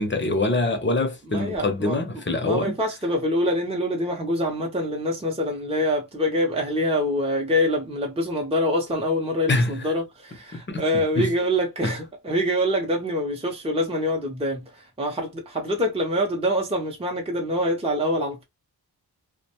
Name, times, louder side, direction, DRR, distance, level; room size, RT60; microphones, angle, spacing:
voice 1, 0.0-2.8 9.5-9.9 10.5-11.3 11.8-11.9, left 2 dB, 30° left, 0.7 m, -25 dB
voice 2, 1.3-2.0 2.4-18.4, equal, 15° right, 0.6 m, -25 dB
2.4 x 2.1 x 2.9 m
wide cardioid pair, 85°, 40 cm